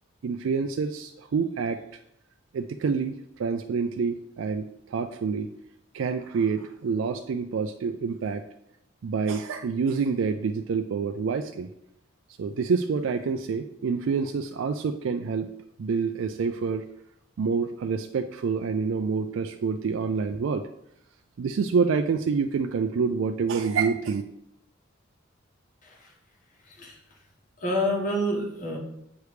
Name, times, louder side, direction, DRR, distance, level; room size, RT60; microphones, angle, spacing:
voice 1, 0.2-1.8 2.5-5.5 5.9-8.4 9.0-11.7 12.4-15.5 15.8-16.9 17.4-20.7 21.4-24.2, right 5 dB, 75° right, 7 dB, 0.4 m, -27 dB
voice 2, 27.6-28.8, equal, 40° left, -1 dB, 1.4 m, -28 dB
8.1 x 3.2 x 4.9 m, 0.79 s
head